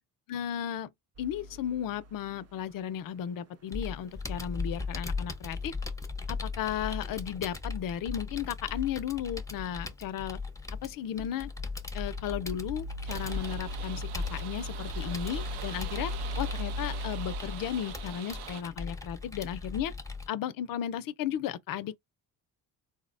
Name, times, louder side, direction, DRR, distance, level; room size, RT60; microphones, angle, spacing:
voice 1, 0.3-0.9 1.2-5.7 6.3-10.4 10.8-11.5 11.9-19.9 20.3-22.0, left 10 dB, 60° left, 0.5 m, -35 dB
sound 1, 1.2-2.7 11.3-17.4, left 1 dB, 40° right, 0.5 m, -38 dB
Computer keyboard, 3.7-20.3, left 4 dB, 10° left, 0.6 m, -38 dB
sound 2, 13.1-18.6, right 8 dB, 80° right, 0.7 m, -44 dB
3.8 x 2.1 x 2.5 m
cardioid pair, 80°, 39 cm